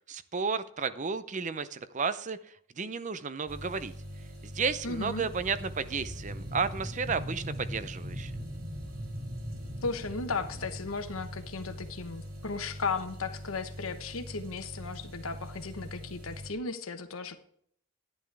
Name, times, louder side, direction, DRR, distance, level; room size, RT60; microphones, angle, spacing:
voice 1, 0.1-2.4 2.8-3.9 4.4-8.3, right 5 dB, 35° right, 13 dB, 0.6 m, -32 dB
sound 1, 3.5-16.5, equal, 85° right, 2.8 m, -44 dB
voice 2, 4.8-5.3 9.8-17.4, left 4 dB, 80° left, 8 dB, 1.1 m, -35 dB
sound 2, 5.2-12.0 12.5-12.6, equal, 55° right, 3.1 m, -41 dB
11.0 x 10.5 x 3.5 m, 0.66 s
head